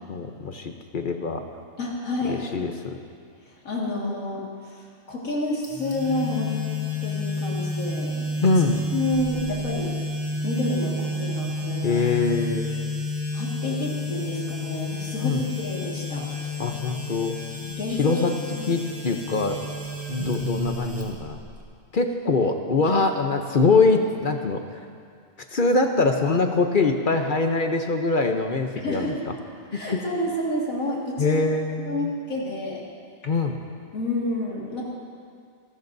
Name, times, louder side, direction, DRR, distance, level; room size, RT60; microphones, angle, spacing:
voice 1, 0.1-1.4 2.2-3.0 8.4-8.8 11.8-12.8 15.2-15.5 16.6-17.3 18.0-18.3 18.7-19.6 20.1-21.4 21.9-24.6 25.5-29.3 29.7-30.0 31.2-32.1 33.2-33.6, left 3 dB, 45° left, 5 dB, 0.8 m, -23 dB
voice 2, 1.8-2.4 3.5-6.7 7.0-8.3 8.6-8.7 8.9-10.0 10.4-12.0 13.3-16.3 17.6-18.2 18.6-18.7 22.8-23.0 28.8-29.3 29.7-31.4 31.9-32.8 33.9-34.8, left 2 dB, 80° left, -4 dB, 2.4 m, -29 dB
sound 1, 5.6-21.6, left 1 dB, 10° right, 1.7 m, -30 dB
25.5 x 13.0 x 2.7 m, 2.2 s
omnidirectional pair, 1.4 m